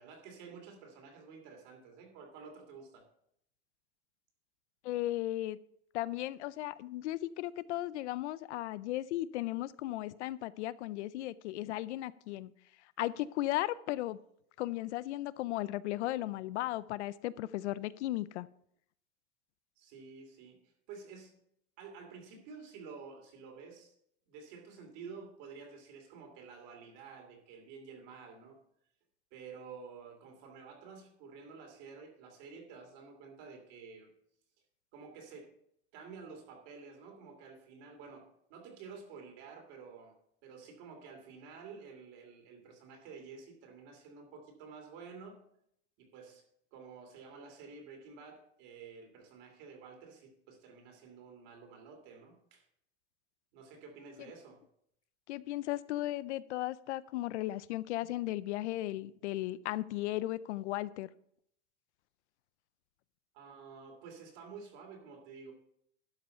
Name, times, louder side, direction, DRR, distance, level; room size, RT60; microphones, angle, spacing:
voice 1, 0.0-3.1 19.8-21.4 21.8-23.9 24.3-28.6 29.3-34.1 34.9-35.5 35.9-40.2 40.4-45.5 46.0-46.4 46.7-52.6 53.5-54.6 63.3-65.5, right 5 dB, 40° right, 3 dB, 2.7 m, -51 dB
voice 2, 4.8-5.6 5.9-12.5 13.0-14.2 14.6-18.5 55.3-61.1, left 15 dB, 75° left, 18 dB, 0.5 m, -36 dB
12.0 x 5.5 x 5.6 m, 0.71 s
supercardioid pair, 170°, 35 cm